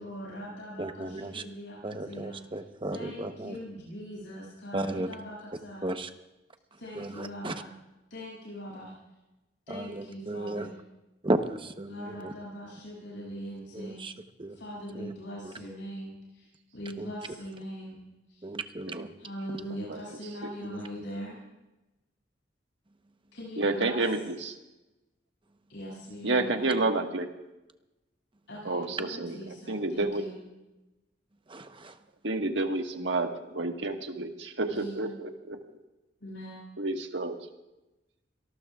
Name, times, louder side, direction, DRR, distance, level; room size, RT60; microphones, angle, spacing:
voice 1, 0.0-2.4 2.9-5.9 6.8-7.7 8.1-8.9 9.7-10.8 11.9-14.0 14.5-18.0 18.3-18.5 19.2-21.4 23.3-24.0 25.7-26.9 28.5-30.4 34.7-35.1 36.2-36.6, equal, 75° left, -6 dB, 7.5 m, -41 dB
voice 2, 0.8-1.4 1.8-3.6 4.7-5.1 5.8-6.1 6.9-7.5 9.7-10.7 11.2-12.3 13.7-14.1 14.4-14.6 14.9-15.1 15.4-15.5 17.0-17.1 18.4-19.1 20.6-20.9 31.5-32.0, right 2 dB, 30° right, 7 dB, 1.0 m, -34 dB
voice 3, 23.6-24.6 26.2-27.3 28.7-30.3 32.2-35.6 36.8-37.4, right 2 dB, 75° right, 4 dB, 1.6 m, -30 dB
26.5 x 19.0 x 2.4 m, 1.0 s
head